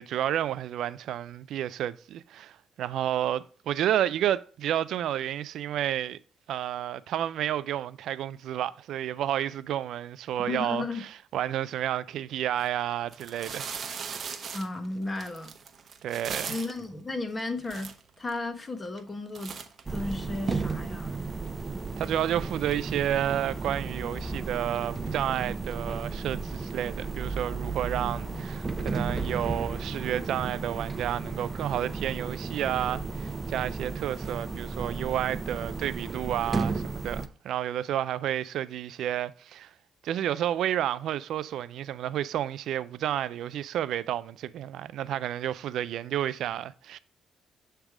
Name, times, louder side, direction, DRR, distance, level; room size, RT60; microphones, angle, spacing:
voice 1, 0.0-6.2 6.5-13.8 16.0-16.6 22.0-39.7 40.0-47.0, right 11 dB, 80° right, 0.3 m, -31 dB
voice 2, 10.5-11.0 14.5-15.5 16.5-17.9 18.2-19.6 19.9-21.2, left 2 dB, 25° left, 1.2 m, -34 dB
sound 1, 12.5-12.6 13.1-16.8 17.4-17.5 17.7-18.4 18.9-19.1 19.3-20.5, right 6 dB, 50° right, 0.8 m, -38 dB
sound 2, 19.9-37.3, right 4 dB, 25° right, 0.6 m, -34 dB
7.4 x 3.4 x 4.7 m
cardioid pair, 90°, 0 cm